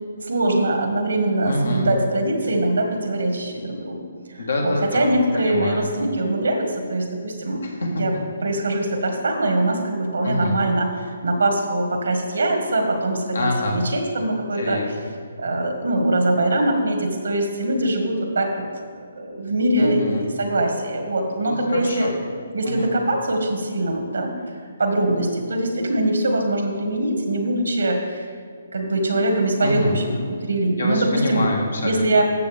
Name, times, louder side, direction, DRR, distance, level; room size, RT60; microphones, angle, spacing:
voice 1, 0.2-4.0 4.3-7.6 7.9-8.1 8.4-14.8 15.4-18.7 18.9-22.1 22.5-24.3 24.8-28.3 28.7-30.0 30.4-31.4 31.8-32.2, right 1 dB, 80° right, 4 dB, 1.8 m, -22 dB
voice 2, 1.4-1.9 4.4-5.9 7.6-8.0 10.2-10.6 13.3-13.8 14.5-15.1 19.8-20.2 21.4-22.2 22.6-22.9 29.6-29.9 30.8-32.0, left 1 dB, 85° left, 0 dB, 1.9 m, -26 dB
13.5 x 7.1 x 3.5 m, 2.1 s
hypercardioid pair, 145°, 0 cm